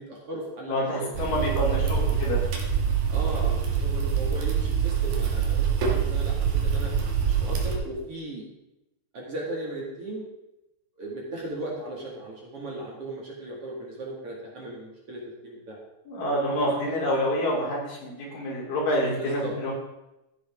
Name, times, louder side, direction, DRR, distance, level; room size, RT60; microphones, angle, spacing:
voice 1, 0.0-2.1 3.1-6.3 6.6-6.9 7.2-8.4 9.1-10.2 11.0-15.8 19.2-19.5, right 1 dB, 45° right, -3 dB, 2.8 m, -37 dB
voice 2, 0.7-2.4 16.1-19.7, equal, 70° left, -4 dB, 5.1 m, -27 dB
sound 1, 1.1-7.8, right 7 dB, 65° right, 2.9 m, -25 dB
14.5 x 9.4 x 3.7 m, 0.92 s
omnidirectional pair, 4.1 m